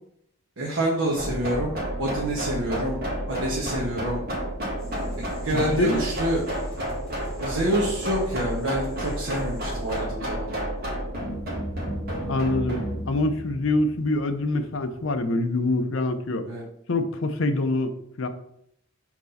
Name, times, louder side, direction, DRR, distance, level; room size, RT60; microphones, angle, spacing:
voice 1, 0.6-3.0 3.3-4.2 5.2-6.4 7.4-10.6 16.5-16.6, right 1 dB, 75° right, -3 dB, 1.2 m, -27 dB
sound 1, 1.2-14.9, equal, 45° right, 1.8 m, -31 dB
sound 2, 4.8-10.0, left 1 dB, 5° left, 2.6 m, -46 dB
voice 2, 5.5-6.0 12.3-16.4 16.9-18.3, left 2 dB, 70° left, 7 dB, 0.6 m, -25 dB
6.0 x 4.2 x 4.1 m, 0.73 s
head